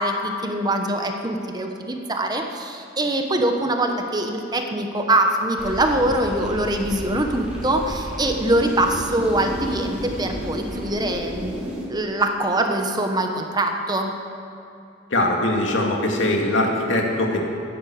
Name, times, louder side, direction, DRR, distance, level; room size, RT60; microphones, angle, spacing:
voice 1, 0.0-14.2, right 1 dB, 20° right, 4 dB, 1.1 m, -23 dB
sound 1, 5.6-11.8, equal, 5° right, 3.0 m, -32 dB
voice 2, 15.1-17.4, left 1 dB, 90° left, 0 dB, 2.3 m, -21 dB
14.5 x 10.5 x 7.9 m, 2.7 s
head